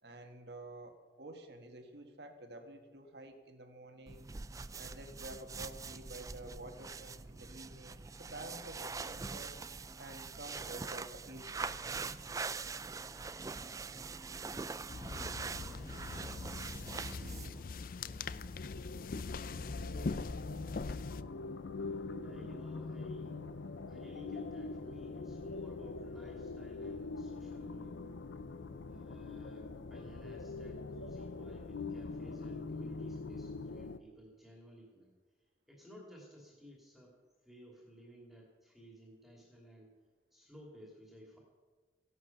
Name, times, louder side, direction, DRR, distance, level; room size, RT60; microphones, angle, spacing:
voice 1, 0.0-4.3 4.8-9.5 10.0-11.8, right 1 dB, 65° right, 5 dB, 1.7 m, -50 dB
sound 1, 4.1-17.6, right 4 dB, 20° right, 0.3 m, -43 dB
voice 2, 14.6-19.1 19.4-20.3 22.2-23.4 23.9-28.2 28.9-35.1 35.7-37.1 37.4-39.9 40.3-41.4, equal, ahead, -3 dB, 2.6 m, -57 dB
sound 2, 14.9-21.2, left 4 dB, 50° left, 0.4 m, -42 dB
sound 3, 18.6-34.0, left 3 dB, 85° left, 0.7 m, -43 dB
15.5 x 11.5 x 5.9 m, 1.4 s
head